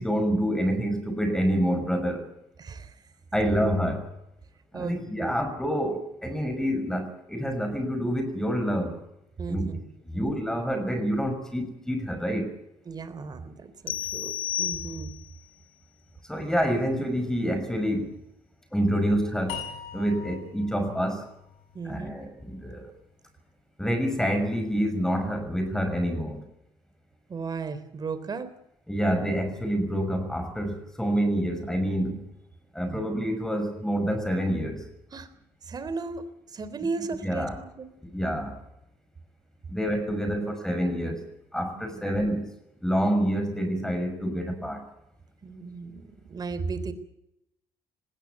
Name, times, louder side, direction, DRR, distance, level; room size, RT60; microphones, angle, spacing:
voice 1, 0.0-2.2 3.3-4.1 4.7-9.0 9.5-9.7 10.1-12.5 16.3-18.2 18.7-19.6 19.9-21.3 21.8-22.9 23.8-26.4 28.9-32.3 32.7-34.8 37.2-37.6 38.1-38.6 39.7-41.2 41.5-42.5 42.8-44.8, equal, 5° left, 7 dB, 6.1 m, -27 dB
voice 2, 2.6-3.0 4.7-5.4 9.4-9.8 10.1-10.3 12.9-14.3 14.6-15.1 21.7-22.1 27.3-28.5 32.9-33.0 35.1-35.3 35.6-37.9 40.1-40.4 41.7-42.0 45.4-46.9, right 4 dB, 40° right, 13 dB, 3.6 m, -35 dB
sound 1, 13.9-15.4, left 11 dB, 60° left, 1.2 m, -32 dB
sound 2, 19.5-22.7, left 8 dB, 75° left, 6.4 m, -41 dB
20.0 x 17.0 x 9.4 m, 0.83 s
supercardioid pair, 70°, 10 cm